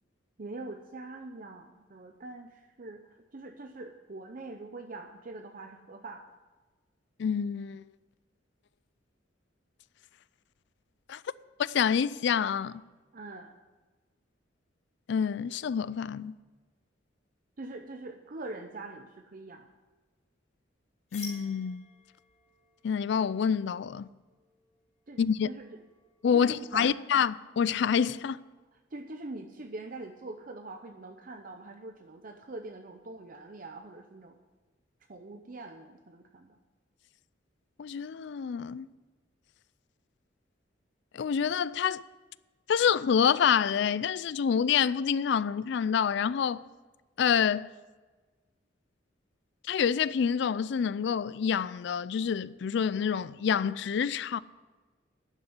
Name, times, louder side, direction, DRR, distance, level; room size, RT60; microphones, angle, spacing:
voice 1, 0.4-6.3 13.1-13.6 17.6-19.7 25.1-25.7 26.3-27.0 28.9-34.4 35.1-36.6, right 2 dB, 45° right, 0.6 m, -43 dB
voice 2, 7.2-7.8 11.1-11.2 11.6-12.8 15.1-16.4 21.1-21.8 22.8-24.1 25.2-25.5 26.2-28.4 37.8-38.9 41.1-42.0 42.7-46.6 47.2-47.7 49.6-54.4, left 7 dB, 65° left, 0.3 m, -27 dB
sound 1, 21.1-26.7, left 3 dB, 40° left, 5.0 m, -52 dB
11.5 x 6.6 x 9.5 m
head